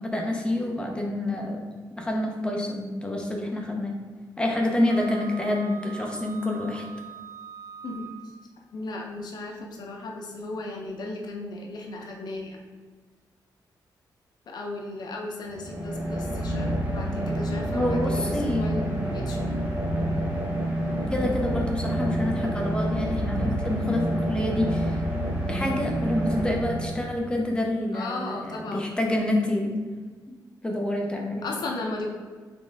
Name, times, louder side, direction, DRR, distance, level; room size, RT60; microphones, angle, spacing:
voice 1, 0.0-1.6 2.0-4.0 4.4-6.8 17.7-18.7 21.1-25.0 25.5-29.8 30.6-31.4, left 1 dB, 10° left, 0 dB, 0.7 m, -27 dB
Wind instrument woodwind instrument, 4.9-8.5, right 9 dB, 50° right, 0.5 m, -43 dB
voice 2, 8.7-12.6 14.5-19.4 27.9-29.0 31.4-32.1, left 2 dB, 65° left, 0 dB, 0.6 m, -36 dB
sound 1, 15.5-27.4, right 1 dB, 25° right, 1.1 m, -28 dB
4.3 x 3.6 x 3.4 m, 1.5 s
wide cardioid pair, 150°, 8 cm